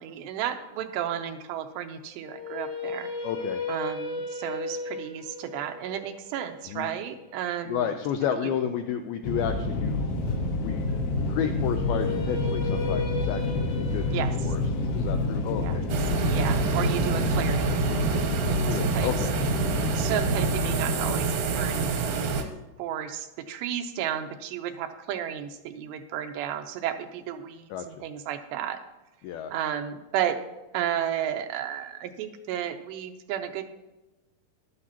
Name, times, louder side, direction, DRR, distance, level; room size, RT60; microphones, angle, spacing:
voice 1, 0.0-3.1 3.7-7.9 14.1-14.3 15.6-15.8 16.3-17.8 18.7-19.2 19.9-22.4 22.8-28.8 29.5-30.4 30.7-33.7, right 10 dB, 85° right, 6 dB, 2.8 m, -33 dB
sound 1, 2.2-8.4 11.6-17.7, left 3 dB, 50° left, 1.7 m, -37 dB
voice 2, 3.2-3.6 6.7-6.9 7.7-10.0 10.6-10.9 11.3-14.6 14.9-15.8 18.6-19.3 27.7-27.9 29.2-29.5, left 9 dB, 85° left, 6 dB, 2.2 m, -31 dB
sound 2, 9.2-21.2, left 2 dB, 70° left, 2.7 m, -28 dB
sound 3, 15.9-22.4, right 5 dB, 70° right, 2.2 m, -27 dB
13.5 x 12.0 x 2.9 m, 1.1 s
omnidirectional pair, 5.0 m